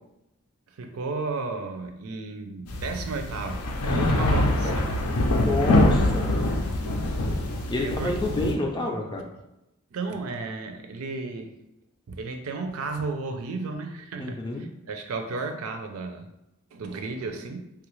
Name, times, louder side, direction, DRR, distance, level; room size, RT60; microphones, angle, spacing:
voice 1, 0.7-4.9 6.0-6.1 7.8-8.2 9.9-11.5 12.1-16.3 16.7-17.7, right 3 dB, 75° right, 5 dB, 0.4 m, -34 dB
sound 1, 2.7-8.5, left 1 dB, 80° left, 0.5 m, -24 dB
voice 2, 3.8-4.8 5.3-6.5 7.7-9.3 14.2-14.7, left 2 dB, 20° left, 1 dB, 0.4 m, -29 dB
3.3 x 2.4 x 3.0 m, 0.89 s
head